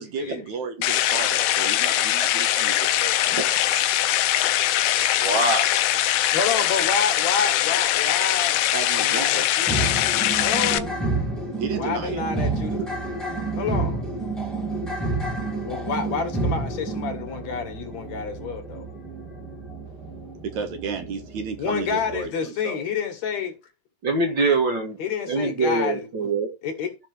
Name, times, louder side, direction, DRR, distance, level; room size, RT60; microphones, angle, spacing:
voice 1, 0.0-3.6 8.7-9.5 11.6-12.2 20.4-22.8, right 5 dB, 70° right, 2.7 m, -33 dB
sound 1, 0.8-10.8, left 13 dB, 85° left, 2.2 m, -22 dB
voice 2, 5.2-5.6 24.0-25.0 25.3-26.5, right 2 dB, 45° right, 2.0 m, -23 dB
voice 3, 6.3-8.6 9.0-10.0 10.4-11.0 11.8-12.8 13.6-14.0 15.6-18.8 21.6-23.5 25.0-26.3 26.6-27.0, left 5 dB, 65° left, 2.8 m, -29 dB
sound 2, 9.7-22.3, right 2 dB, ahead, 1.6 m, -30 dB
15.0 x 5.9 x 3.3 m
omnidirectional pair, 3.5 m